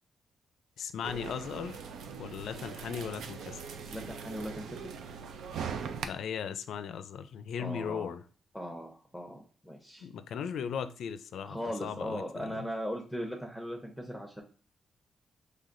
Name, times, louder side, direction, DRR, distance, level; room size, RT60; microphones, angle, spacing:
voice 1, 0.8-1.8 2.2-3.6 6.0-8.2 10.0-12.7, left 7 dB, 85° left, 12 dB, 0.4 m, -37 dB
sound 1, 1.0-6.0, right 6 dB, 90° right, 0.5 m, -41 dB
voice 2, 3.9-4.9 7.6-8.1 8.5-10.1 11.4-14.4, equal, ahead, 0 dB, 0.8 m, -39 dB
5.8 x 3.3 x 2.5 m, 0.40 s
cardioid pair, 120°, 0 cm